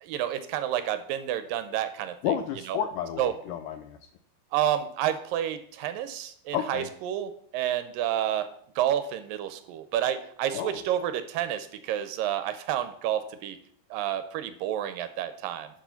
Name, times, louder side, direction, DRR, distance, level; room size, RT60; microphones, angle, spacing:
voice 1, 0.0-2.2 2.7-2.8 3.2-3.3 4.5-8.5 8.8-13.6 13.9-15.7, right 11 dB, 80° right, 10 dB, 2.1 m, -29 dB
voice 2, 2.2-4.0 6.5-6.9 10.5-10.8, left 9 dB, 85° left, 8 dB, 1.8 m, -31 dB
10.5 x 6.2 x 5.7 m, 0.63 s
omnidirectional pair, 4.5 m